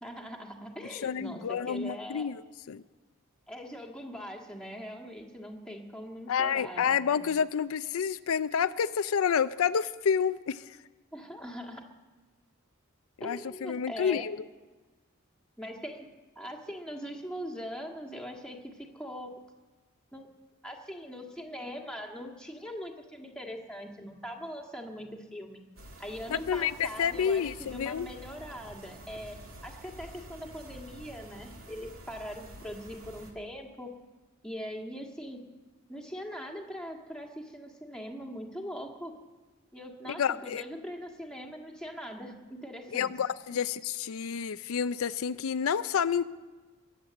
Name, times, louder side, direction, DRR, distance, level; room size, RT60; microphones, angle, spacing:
voice 1, 0.0-2.3 3.5-7.3 11.1-11.8 13.2-14.3 15.6-16.1 16.3-19.3 20.1-20.3 20.6-25.6 26.0-29.4 29.6-33.9 34.4-35.4 35.9-39.1 39.7-43.1, equal, 5° left, 1 dB, 1.7 m, -41 dB
voice 2, 0.9-2.4 2.7-2.8 6.3-10.8 13.2-14.4 26.3-28.1 40.2-40.6 42.9-46.2, left 7 dB, 80° left, 13 dB, 0.4 m, -29 dB
sound 1, 25.8-33.3, right 1 dB, 85° right, 2.5 m, -49 dB
22.5 x 8.1 x 7.6 m, 1.3 s
head